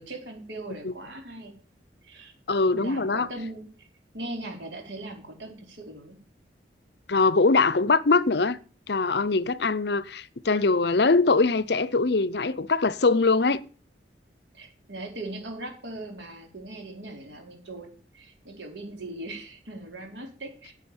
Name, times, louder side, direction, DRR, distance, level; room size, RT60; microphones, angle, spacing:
voice 1, 0.0-1.5 2.0-2.3 2.7-3.9 4.1-6.2 14.5-20.7, right 2 dB, 80° right, 4.2 m, -39 dB
voice 2, 2.5-3.3 7.1-8.6 8.9-13.6, left 3 dB, 65° left, 0.7 m, -22 dB
10.0 x 8.3 x 8.7 m
head